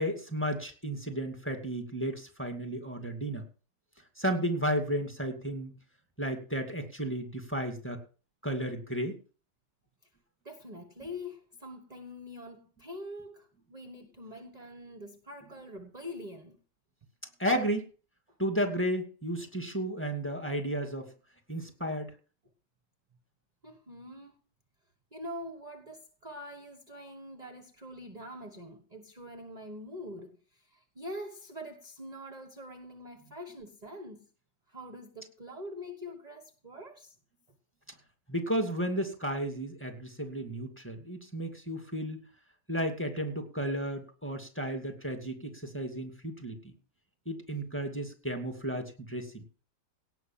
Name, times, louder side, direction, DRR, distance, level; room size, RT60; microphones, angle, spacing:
voice 1, 0.0-3.5 4.2-5.7 6.2-8.0 8.4-9.2 17.4-17.9 18.4-21.1 21.5-22.1 38.3-42.2 42.7-46.7 47.3-49.4, equal, 5° left, 2.3 m, -33 dB
voice 2, 10.4-16.6 23.6-24.3 25.1-34.3 34.7-37.1, left 1 dB, 25° right, 1.2 m, -44 dB
17.5 x 6.3 x 7.4 m
omnidirectional pair, 2.0 m